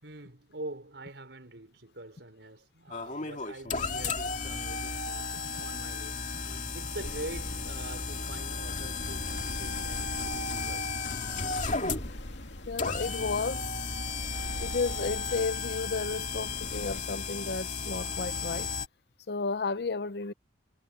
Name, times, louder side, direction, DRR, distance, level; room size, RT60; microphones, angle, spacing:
voice 1, 0.0-6.2 6.7-10.9, right 2 dB, 75° right, 4.8 m, -44 dB
sound 1, 2.9-18.9, left 4 dB, 45° left, 2.2 m, -34 dB
sound 2, 7.0-17.0, left 1 dB, 85° left, 2.5 m, -45 dB
voice 2, 12.7-14.0 14.6-18.7 19.3-20.3, left 4 dB, 60° left, 0.7 m, -33 dB
head